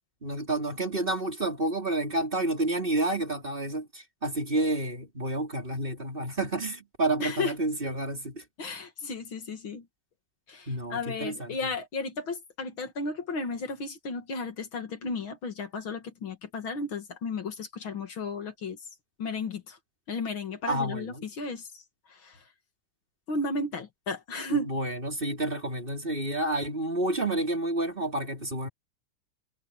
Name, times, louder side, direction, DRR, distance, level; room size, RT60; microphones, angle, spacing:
voice 1, 0.2-8.4 10.7-11.6 20.7-21.3 24.5-28.7, right 2 dB, 15° right, 3.4 m, -30 dB
voice 2, 7.2-7.5 8.6-9.9 10.5-18.8 19.2-19.8 20.1-21.7 22.1-22.4 23.3-24.7, left 3 dB, 40° left, 2.0 m, -34 dB
omnidirectional pair, 4.3 m